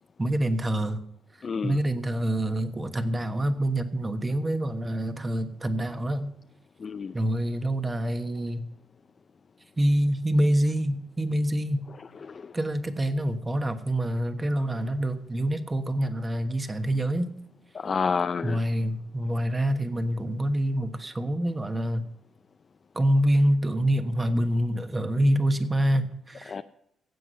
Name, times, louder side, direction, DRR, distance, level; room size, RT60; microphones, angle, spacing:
voice 1, 0.2-1.0 1.6-6.3 7.1-8.6 9.8-11.8 12.5-17.3 18.4-22.0 22.9-26.6, right 1 dB, 20° right, 8 dB, 1.2 m, -26 dB
voice 2, 1.4-1.8 6.8-7.1 12.2-12.5 17.7-18.6 26.5-26.6, left 5 dB, 40° left, 9 dB, 0.4 m, -29 dB
16.0 x 7.6 x 5.5 m, 0.72 s
cardioid pair, 90°, 0 cm